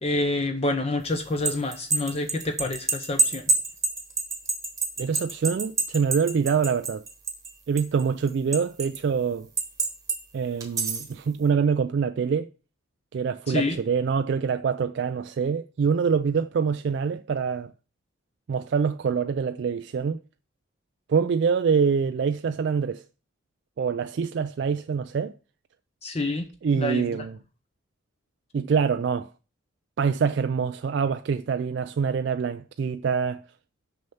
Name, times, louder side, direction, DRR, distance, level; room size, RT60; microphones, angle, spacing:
voice 1, 0.0-3.5 13.5-13.8 26.0-26.5 26.8-27.0, left 2 dB, 30° left, 0.6 m, -27 dB
sound 1, 1.2-7.5 7.8-9.0 9.6-10.2 10.6-11.1, right 4 dB, 15° right, 1.1 m, -27 dB
voice 2, 5.0-7.0 7.7-9.5 10.3-12.5 13.1-17.7 18.5-20.2 21.1-23.0 23.8-25.3 26.6-27.4 28.5-29.3 30.0-33.4, right 6 dB, 60° right, 0.3 m, -25 dB
6.4 x 5.6 x 7.1 m
head